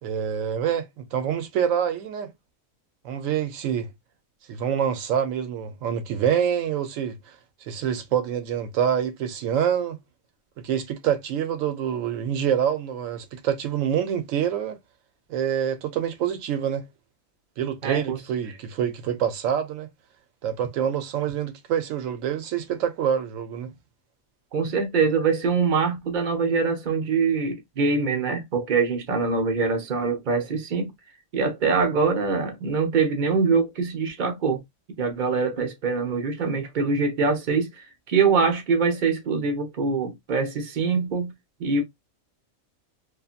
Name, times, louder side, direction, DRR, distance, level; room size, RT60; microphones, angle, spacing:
voice 1, 0.0-2.3 3.0-3.9 4.5-7.4 7.6-10.0 10.6-14.8 15.3-16.8 17.6-19.9 20.4-23.7, right 9 dB, 75° right, 1.0 m, -26 dB
voice 2, 17.8-18.2 24.5-30.9 31.3-34.6 35.0-37.7 38.1-41.3 41.6-41.8, right 4 dB, 45° right, 0.7 m, -24 dB
2.6 x 2.5 x 2.4 m
omnidirectional pair, 1.4 m